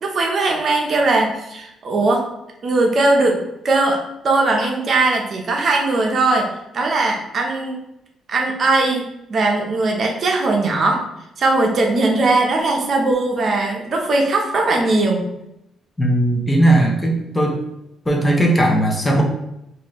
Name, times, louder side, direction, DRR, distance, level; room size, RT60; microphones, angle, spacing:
voice 1, 0.0-2.2 2.6-4.0 4.2-6.5 6.7-7.8 8.3-9.0 9.3-11.0 11.4-15.3, right 2 dB, 50° right, 1 dB, 0.7 m, -19 dB
voice 2, 16.0-17.6 18.1-19.2, right 1 dB, 15° left, 0 dB, 0.7 m, -17 dB
3.8 x 2.6 x 3.1 m, 0.84 s
cardioid pair, 90°, 0 cm